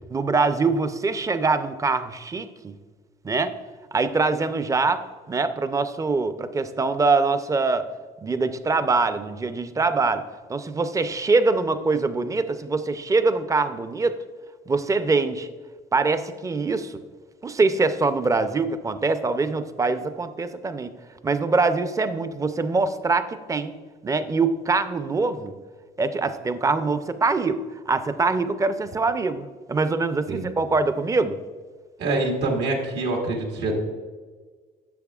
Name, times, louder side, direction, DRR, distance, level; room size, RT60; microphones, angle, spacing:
voice 1, 0.1-2.7 3.2-3.5 3.9-7.9 8.2-10.2 10.5-14.2 14.7-15.5 15.9-17.0 17.4-20.9 21.2-23.7 24.0-25.5 26.0-27.6 27.9-31.4, right 3 dB, 20° right, 11 dB, 0.5 m, -23 dB
voice 2, 32.0-33.8, right 2 dB, 85° right, 0 dB, 1.8 m, -25 dB
10.5 x 6.8 x 2.4 m, 1.5 s
cardioid pair, 110°, 17 cm